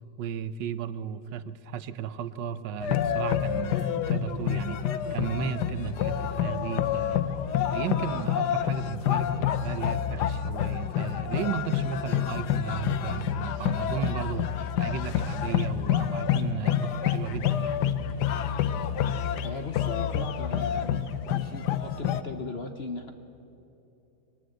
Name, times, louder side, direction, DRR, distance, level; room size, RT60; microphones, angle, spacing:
voice 1, 0.2-7.3 7.7-17.8, right 8 dB, 80° right, 13 dB, 1.5 m, -35 dB
sound 1, 2.8-22.2, left 9 dB, 70° left, 1.3 m, -28 dB
voice 2, 19.4-21.1 21.3-23.1, left 4 dB, 45° left, 7 dB, 0.9 m, -37 dB
22.0 x 19.0 x 8.0 m, 2.9 s
omnidirectional pair, 1.9 m